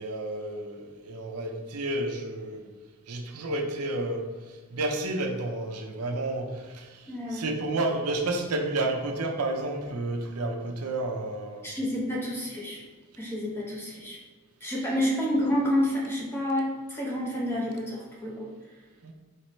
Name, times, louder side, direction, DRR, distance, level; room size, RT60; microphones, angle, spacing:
voice 1, 0.0-2.7 3.1-11.7 19.0-19.1, right 2 dB, 90° right, 3 dB, 0.6 m, -31 dB
voice 2, 7.1-7.5 11.6-12.8 13.2-14.2 14.6-18.5, left 1 dB, 10° left, -4 dB, 0.8 m, -29 dB
4.4 x 3.2 x 3.1 m, 1.4 s
head